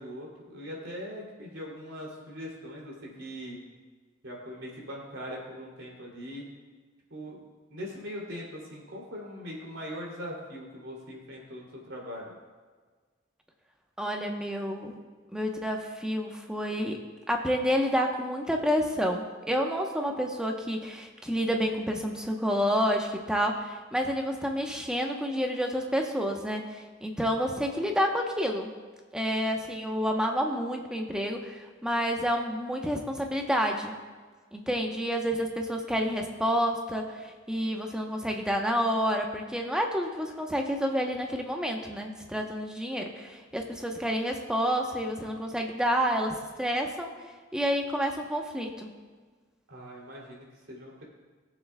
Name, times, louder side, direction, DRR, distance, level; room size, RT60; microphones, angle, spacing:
voice 1, 0.0-3.6 4.2-6.5 7.1-7.4 7.7-12.3 49.7-51.0, equal, 90° right, -3 dB, 2.8 m, -41 dB
voice 2, 14.0-15.0 15.3-17.0 17.3-28.7 29.1-34.0 34.5-47.1 47.5-48.9, equal, 5° right, 2 dB, 0.9 m, -29 dB
20.0 x 7.2 x 2.3 m, 1.4 s
head